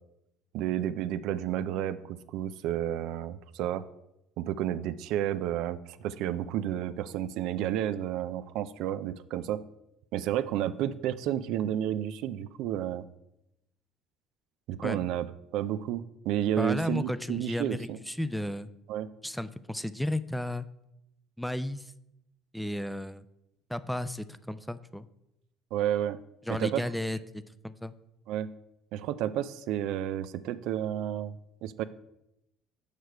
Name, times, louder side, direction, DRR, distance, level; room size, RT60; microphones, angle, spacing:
voice 1, 0.5-3.8 4.4-9.6 10.1-13.0 14.7-15.3 15.5-18.0 18.9-19.1 25.7-26.2 26.5-26.8 28.3-28.5 28.9-31.4 31.6-31.8, right 11 dB, 75° right, 13 dB, 0.3 m, -31 dB
voice 2, 16.6-18.7 19.2-20.7 21.4-21.9 22.5-23.2 23.7-25.1 26.5-27.9, left 1 dB, ahead, 14 dB, 0.4 m, -33 dB
6.5 x 4.9 x 4.5 m, 0.85 s
supercardioid pair, 80°, 0 cm